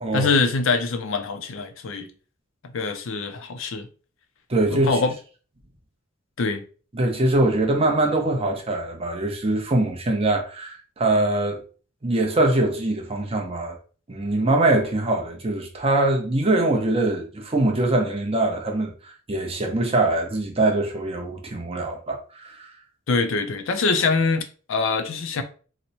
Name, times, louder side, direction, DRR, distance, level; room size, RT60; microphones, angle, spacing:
voice 1, 0.1-2.1 2.7-3.9 4.7-5.1 6.4-6.6 23.1-25.4, left 4 dB, 70° left, 0.5 m, -24 dB
voice 2, 4.5-5.0 6.9-11.6 12.0-13.8 14.1-22.7, right 2 dB, 30° right, 0.7 m, -23 dB
3.0 x 2.1 x 4.0 m
head